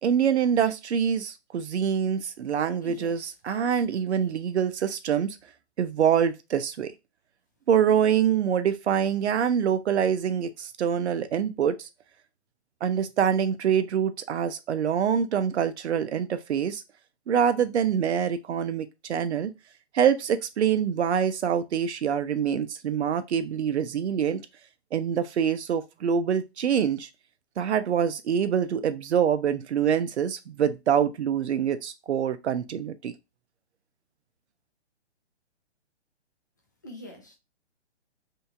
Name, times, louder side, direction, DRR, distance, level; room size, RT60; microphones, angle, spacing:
voice 1, 0.0-5.4 5.8-6.9 7.7-11.9 12.8-16.8 17.3-19.5 19.9-24.4 24.9-27.1 27.6-33.1, right 8 dB, 75° right, 0.7 m, -25 dB
voice 2, 2.8-4.3 36.8-37.3, left 1 dB, 20° left, 0.4 m, -45 dB
2.9 x 2.7 x 3.4 m
hypercardioid pair, 160°, 34 cm